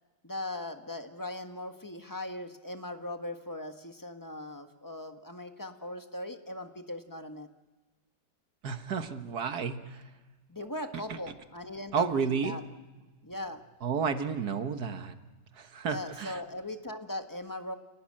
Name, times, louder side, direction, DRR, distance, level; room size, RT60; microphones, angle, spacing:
voice 1, 0.2-7.5 10.5-12.6 13.2-13.6 15.8-17.7, left 1 dB, 10° left, 6 dB, 1.4 m, -39 dB
voice 2, 8.6-10.1 11.9-12.6 13.8-15.1 15.5-16.4, right 6 dB, 65° right, 8 dB, 1.9 m, -31 dB
30.0 x 18.5 x 8.8 m, 1.2 s
omnidirectional pair, 1.9 m